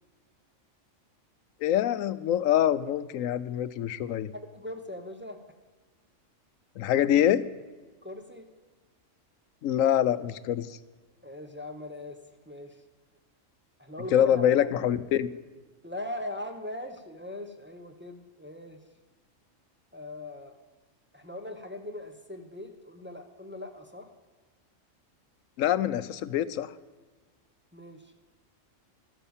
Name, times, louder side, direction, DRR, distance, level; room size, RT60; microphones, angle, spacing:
voice 1, 1.6-4.3 6.8-7.4 9.6-10.8 14.1-15.3 25.6-26.7, left 10 dB, 90° left, 15 dB, 1.0 m, -25 dB
voice 2, 4.3-5.4 8.0-8.5 11.2-12.8 13.8-14.9 15.8-18.8 19.9-20.6 21.1-24.1 27.7-28.1, left 1 dB, 10° right, 3 dB, 1.1 m, -40 dB
12.5 x 9.8 x 7.2 m, 1.3 s
omnidirectional pair, 1.3 m